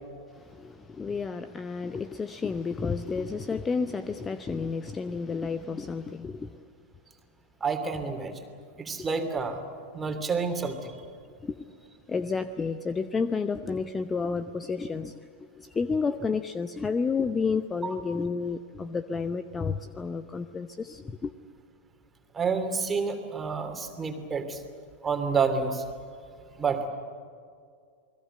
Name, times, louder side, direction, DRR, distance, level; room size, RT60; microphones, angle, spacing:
voice 1, 0.3-6.6 9.0-9.1 11.4-11.7 12.1-21.3, left 5 dB, 15° left, 0.7 m, -31 dB
voice 2, 7.6-8.4 8.8-9.6 9.9-11.0 17.8-17.9 22.3-24.6 25.0-25.8 26.6-26.9, right 5 dB, 15° right, 3.0 m, -29 dB
29.0 x 21.0 x 7.9 m
figure-of-eight pair, 90°, 0 cm